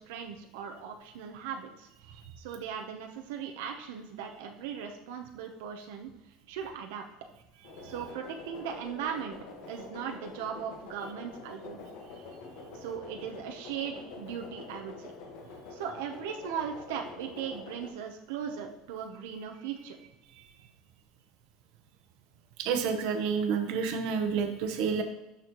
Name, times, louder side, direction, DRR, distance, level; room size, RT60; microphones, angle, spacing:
voice 1, 0.0-6.1 6.5-7.0 7.8-9.4 9.7-11.9 12.7-15.1 15.7-20.0, right 8 dB, 90° right, 3 dB, 0.8 m, -38 dB
sound 1, 7.6-17.9, left 4 dB, 60° left, 1.4 m, -46 dB
voice 2, 22.6-25.0, right 6 dB, 60° right, 6 dB, 0.9 m, -29 dB
12.5 x 4.2 x 3.0 m, 0.97 s
cardioid pair, 155°, 0 cm